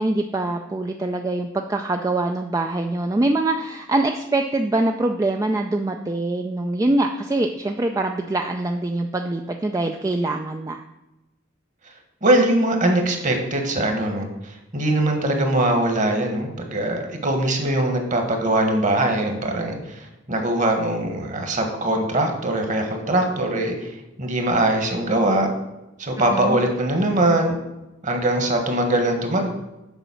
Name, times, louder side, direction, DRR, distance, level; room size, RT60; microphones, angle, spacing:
voice 1, 0.0-10.8 26.2-26.6, right 2 dB, 15° right, 5 dB, 0.3 m, -24 dB
voice 2, 12.2-23.9 24.2-25.5 26.0-27.6 28.0-29.5, right 1 dB, 40° right, 4 dB, 1.3 m, -22 dB
7.1 x 5.1 x 6.9 m, 0.98 s
head